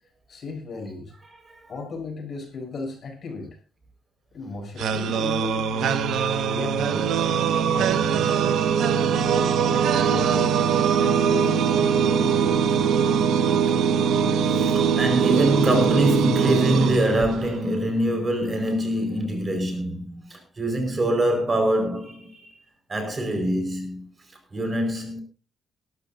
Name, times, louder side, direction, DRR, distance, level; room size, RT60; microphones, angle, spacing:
voice 1, 0.3-1.1 1.7-3.6 4.3-6.0 6.5-8.4 9.3-10.6 11.0-12.6, left 3 dB, 50° left, 7.2 m, -35 dB
voice 2, 1.3-1.7 14.4-22.5 22.9-24.1 24.5-25.2, right 1 dB, 25° right, 4.8 m, -24 dB
sound 1, 4.8-17.7, right 7 dB, 80° right, 1.4 m, -22 dB
22.0 x 13.0 x 2.7 m
cardioid pair, 110°, 0 cm